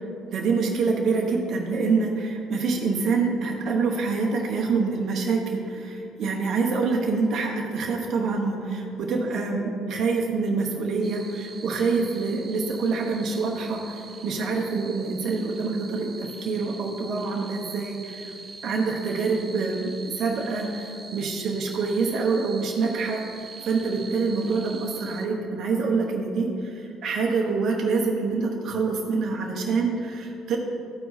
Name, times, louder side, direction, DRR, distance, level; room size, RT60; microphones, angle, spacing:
voice 1, 0.3-18.3 18.6-19.9 20.1-30.6, right 4 dB, 55° right, 0 dB, 1.0 m, -26 dB
sound 1, 11.0-25.3, right 3 dB, 30° right, 1.3 m, -43 dB
12.5 x 4.6 x 4.2 m, 2.6 s
hypercardioid pair, 60°, 0 cm